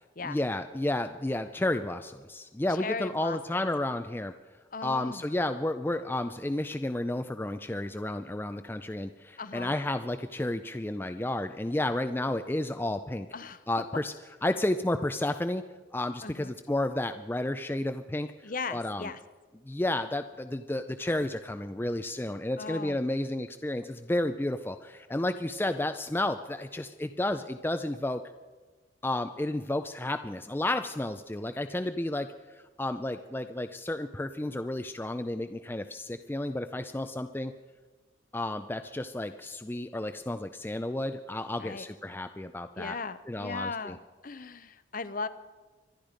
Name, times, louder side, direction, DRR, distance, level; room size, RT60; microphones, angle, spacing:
voice 1, 0.2-4.3 4.8-13.3 13.7-14.1 14.4-15.6 15.9-19.1 19.7-28.2 29.0-32.3 32.5-37.5 38.3-43.0 43.3-44.0, left 1 dB, 10° left, 8 dB, 0.4 m, -32 dB
voice 2, 2.7-3.6 4.7-5.2 9.4-9.7 13.3-13.6 16.2-16.5 18.4-19.2 22.6-23.0 41.6-41.9 42.8-45.3, left 4 dB, 45° left, 13 dB, 0.7 m, -37 dB
24.5 x 10.5 x 5.1 m, 1.3 s
head